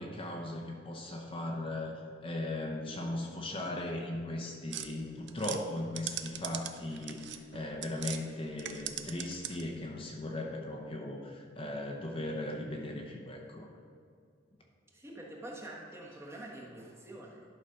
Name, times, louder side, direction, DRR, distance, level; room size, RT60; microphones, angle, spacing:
voice 1, 0.0-1.9 2.2-13.7, left 1 dB, 30° left, 0 dB, 0.8 m, -38 dB
sound 1, 4.7-8.2 8.5-9.8, right 10 dB, 65° right, 0.5 m, -41 dB
voice 2, 14.9-17.4, right 1 dB, 15° right, -2 dB, 1.2 m, -46 dB
11.5 x 4.1 x 5.7 m, 2.2 s
head